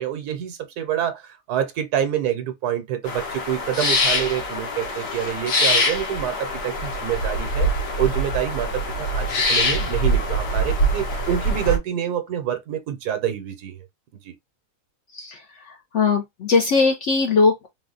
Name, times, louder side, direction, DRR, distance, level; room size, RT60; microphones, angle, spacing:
voice 1, 0.0-7.7 8.0-13.7 14.2-14.3, right 10 dB, 80° right, 1.4 m, -27 dB
sound 1, 3.0-11.8, equal, 80° left, 2.0 m, -23 dB
voice 2, 15.1-17.7, left 4 dB, 60° left, 0.8 m, -20 dB
4.2 x 2.3 x 3.8 m
omnidirectional pair, 1.7 m